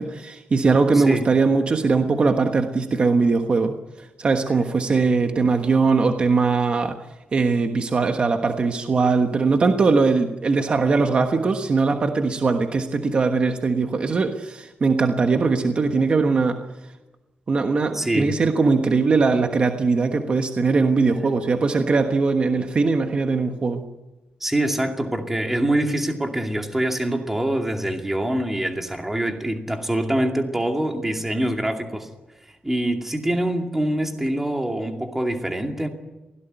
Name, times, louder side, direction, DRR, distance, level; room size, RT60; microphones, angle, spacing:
voice 1, 0.0-3.8 4.2-7.0 7.3-16.6 17.5-23.8, right 4 dB, 35° right, 5 dB, 1.3 m, -20 dB
voice 2, 0.9-1.3 17.9-18.4 24.4-32.1 32.5-35.9, right 1 dB, 10° right, 3 dB, 2.4 m, -24 dB
23.5 x 17.5 x 9.2 m, 1.1 s
wide cardioid pair, 165°, 3 cm